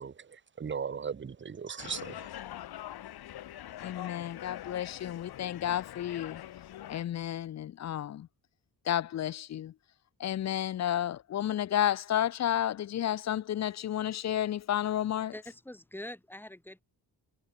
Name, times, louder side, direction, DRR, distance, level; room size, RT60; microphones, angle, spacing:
voice 1, 0.0-2.3, right 6 dB, 30° right, 1.0 m, -38 dB
sound 1, 1.8-7.0, left 12 dB, 65° left, 1.1 m, -44 dB
voice 2, 3.8-6.4 6.9-8.3 8.9-9.7 10.2-15.3, left 11 dB, 45° left, 0.5 m, -31 dB
voice 3, 15.3-16.8, left 1 dB, 5° left, 6.2 m, -44 dB
cardioid pair, 135°, 40 cm